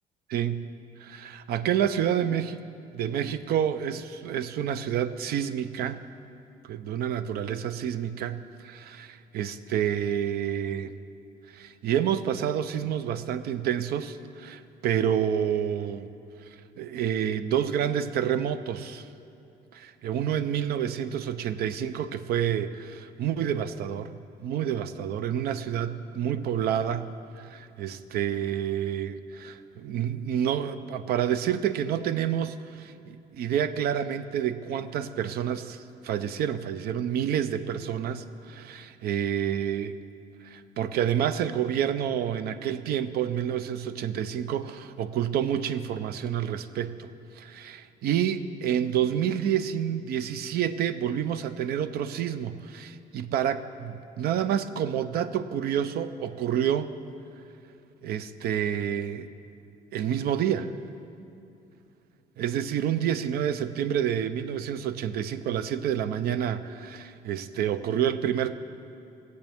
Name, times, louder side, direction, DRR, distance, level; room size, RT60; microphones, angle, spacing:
voice 1, 0.3-0.6 1.0-2.6 2.9-6.0 6.6-10.9 11.5-16.1 16.8-19.1 19.7-40.0 40.4-47.1 47.4-56.9 58.0-59.3 59.9-60.7 62.4-68.5, right 9 dB, 70° right, 13 dB, 0.6 m, -29 dB
19.0 x 7.9 x 3.5 m, 2.8 s
cardioid pair, 110°, 17 cm